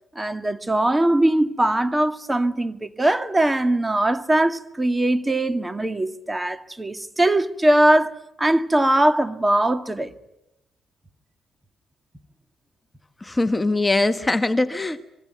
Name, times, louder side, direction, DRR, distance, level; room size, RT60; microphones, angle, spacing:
voice 1, 0.2-8.1 8.4-10.1, right 1 dB, 15° right, 2.0 m, -21 dB
voice 2, 13.2-15.0, left 2 dB, 20° left, 1.3 m, -22 dB
26.0 x 23.0 x 9.3 m
hypercardioid pair, 55°, 0 cm